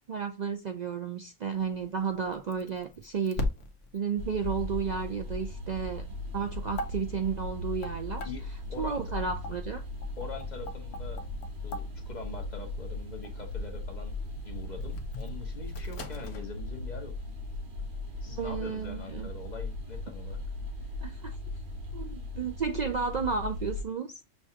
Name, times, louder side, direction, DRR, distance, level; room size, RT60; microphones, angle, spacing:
voice 1, 0.1-3.5 3.9-6.0 6.3-8.3 8.8-9.8 18.4-19.3 21.0-21.4 21.9-24.2, right 6 dB, 90° right, 0.3 m, -32 dB
sound 1, 1.5-16.4, left 2 dB, 70° left, 1.1 m, -42 dB
sound 2, 4.2-23.8, left 2 dB, 45° right, 0.9 m, -38 dB
voice 2, 8.2-9.0 10.2-11.2 11.6-14.1 14.4-17.2 18.2-20.4, left 4 dB, 40° left, 1.0 m, -43 dB
6.4 x 2.3 x 2.7 m
omnidirectional pair, 1.4 m